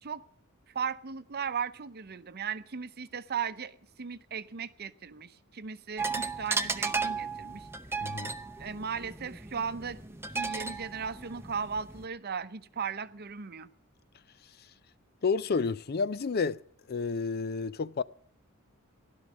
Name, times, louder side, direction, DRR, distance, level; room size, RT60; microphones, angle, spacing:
voice 1, 0.7-7.7 8.6-13.7, right 6 dB, 50° right, 0.7 m, -37 dB
sound 1, 6.0-12.0, right 4 dB, 10° right, 0.7 m, -35 dB
voice 2, 8.0-8.3 15.2-16.6 16.9-18.0, left 4 dB, 50° left, 0.5 m, -30 dB
16.0 x 12.0 x 6.2 m
head